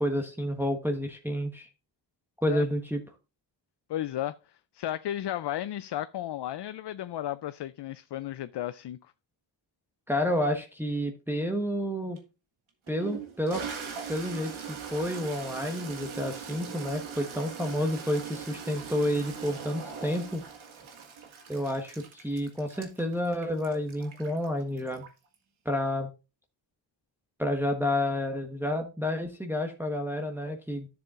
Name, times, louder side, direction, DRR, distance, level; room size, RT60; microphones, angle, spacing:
voice 1, 0.0-1.7 2.4-3.0 10.1-12.2 12.9-13.6 14.1-20.4 21.5-25.0 25.6-26.1 27.4-30.9, left 1 dB, 5° right, 1.2 m, -30 dB
voice 2, 3.9-4.4 4.7-9.0, left 12 dB, 60° left, 0.5 m, -34 dB
Toilet flush, 12.2-12.3 12.9-25.3, right 6 dB, 90° right, 1.7 m, -41 dB
11.0 x 7.1 x 2.5 m
cardioid pair, 70°, 47 cm